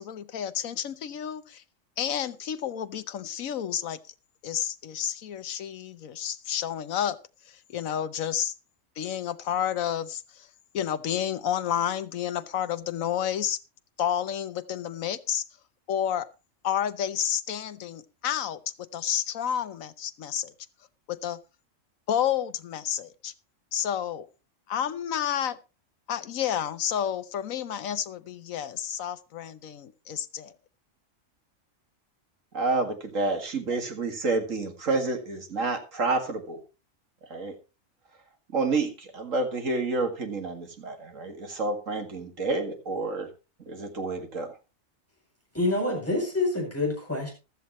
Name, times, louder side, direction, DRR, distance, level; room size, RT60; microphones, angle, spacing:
voice 1, 0.0-1.6 2.0-4.0 4.4-7.2 7.5-8.5 9.0-10.5 10.7-13.6 14.0-15.4 15.9-16.3 16.6-18.6 18.9-20.5 21.1-21.4 22.1-23.3 23.7-24.3 24.7-25.6 26.1-30.5, left 9 dB, 90° left, 13 dB, 1.3 m, -30 dB
voice 2, 32.5-36.6 37.3-37.6 38.5-43.3 43.7-44.5, right 3 dB, 75° right, 5 dB, 2.4 m, -29 dB
voice 3, 45.5-47.3, left 2 dB, 10° left, -2 dB, 7.9 m, -27 dB
15.0 x 12.5 x 3.1 m, 0.30 s
omnidirectional pair, 1.4 m